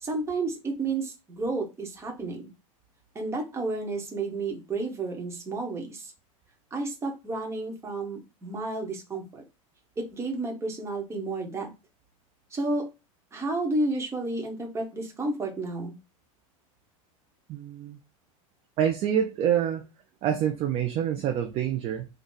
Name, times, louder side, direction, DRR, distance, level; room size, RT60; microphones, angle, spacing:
voice 1, 0.0-2.5 3.1-6.1 6.7-9.4 10.0-11.7 12.5-12.9 13.3-15.9, right 2 dB, 15° right, 1.1 m, -31 dB
voice 2, 17.5-18.0 18.8-19.8 20.2-22.1, right 9 dB, 35° right, 0.5 m, -26 dB
3.8 x 2.3 x 3.8 m
supercardioid pair, 140°, 18 cm